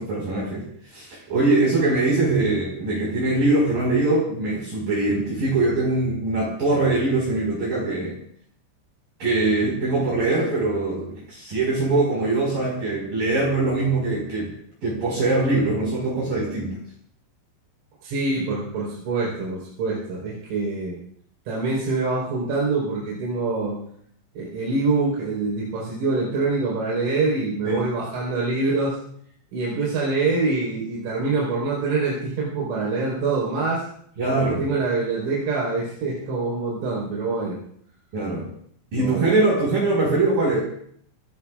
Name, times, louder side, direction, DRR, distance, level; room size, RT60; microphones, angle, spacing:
voice 1, 0.0-8.1 9.2-14.5 14.8-16.8 27.6-27.8 34.2-34.6 38.1-38.5 38.9-40.6, right 2 dB, 45° right, -5 dB, 6.4 m, -22 dB
voice 2, 18.0-21.0 21.5-23.8 24.4-29.0 29.5-33.8 34.3-37.6 39.0-39.3, right 3 dB, 80° right, -5 dB, 7.1 m, -25 dB
28.5 x 19.5 x 2.5 m, 0.65 s
omnidirectional pair, 5.9 m